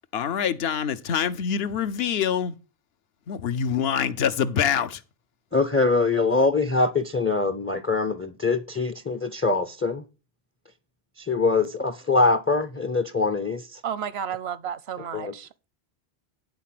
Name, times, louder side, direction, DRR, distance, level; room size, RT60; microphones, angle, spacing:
voice 1, 0.1-2.5 3.3-5.0, left 8 dB, 75° left, 0.9 m, -25 dB
voice 2, 5.5-10.0 11.2-13.8 15.1-15.3, left 3 dB, 20° left, 0.4 m, -23 dB
voice 3, 13.8-15.7, right 8 dB, 80° right, 1.0 m, -32 dB
10.5 x 4.1 x 7.5 m
omnidirectional pair, 1.0 m